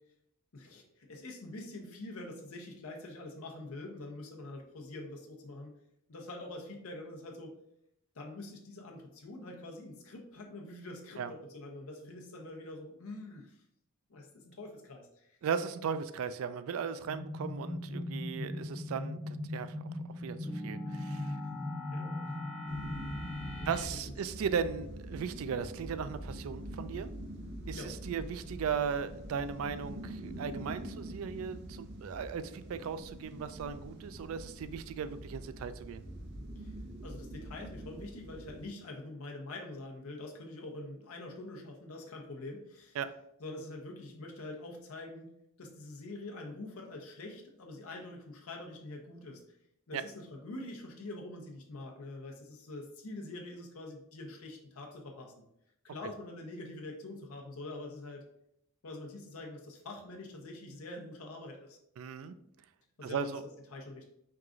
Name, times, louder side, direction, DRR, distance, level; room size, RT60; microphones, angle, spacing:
voice 1, 0.5-5.7 6.1-7.5 8.1-13.6 14.1-15.4 21.9-22.2 23.6-24.1 27.7-27.9 36.6-36.7 37.0-43.0 43.4-45.3 45.6-49.4 49.9-55.3 55.8-58.3 58.8-61.8 63.0-63.3 63.7-64.0, left 2 dB, 85° left, 1 dB, 0.7 m, -45 dB
voice 2, 15.4-19.7 20.2-21.4 23.7-27.1 27.7-36.0 43.0-43.1 49.9-50.0 62.0-62.3 63.0-63.4, right 6 dB, 75° right, 12 dB, 0.3 m, -37 dB
sound 1, 17.0-23.8, left 1 dB, 5° left, 0.7 m, -38 dB
sound 2, 22.7-38.7, right 1 dB, 55° right, 0.8 m, -45 dB
4.6 x 2.4 x 3.7 m, 0.76 s
head